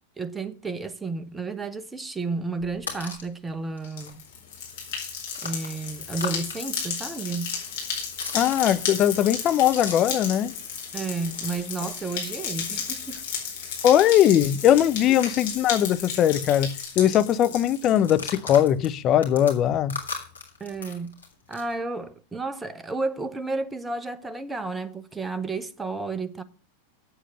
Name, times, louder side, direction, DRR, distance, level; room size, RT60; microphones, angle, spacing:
voice 1, 0.2-4.2 5.4-7.5 10.9-13.2 20.6-21.1 21.5-26.4, right 3 dB, 10° right, 0.9 m, -32 dB
sound 1, 2.6-3.3 3.8-3.9 4.1-6.6 6.8-10.3 10.5-16.2 16.4-16.6 16.8-17.2 17.9-21.7, left 4 dB, 75° left, 3.0 m, -39 dB
sound 2, 3.8-18.1, left 6 dB, 50° left, 4.4 m, -33 dB
voice 2, 8.3-10.5 13.8-20.0, left 11 dB, 30° left, 0.7 m, -20 dB
8.2 x 7.6 x 7.7 m
figure-of-eight pair, 90°, 0 cm